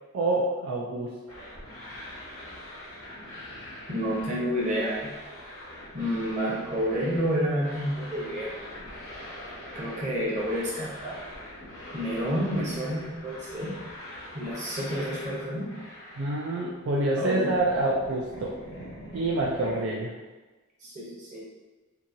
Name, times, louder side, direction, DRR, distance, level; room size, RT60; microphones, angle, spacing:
voice 1, 0.1-1.2 16.2-18.6 19.1-20.1, right 2 dB, 60° right, -3 dB, 0.3 m, -27 dB
sound 1, 1.3-17.0 17.3-19.8, left 1 dB, 65° left, 0.9 m, -43 dB
voice 2, 3.9-5.1 5.9-8.5 9.7-11.3 11.9-13.8 14.3-15.7 17.2-17.5 20.8-21.4, equal, 35° right, -6 dB, 0.8 m, -29 dB
2.8 x 2.7 x 2.6 m, 1.2 s
head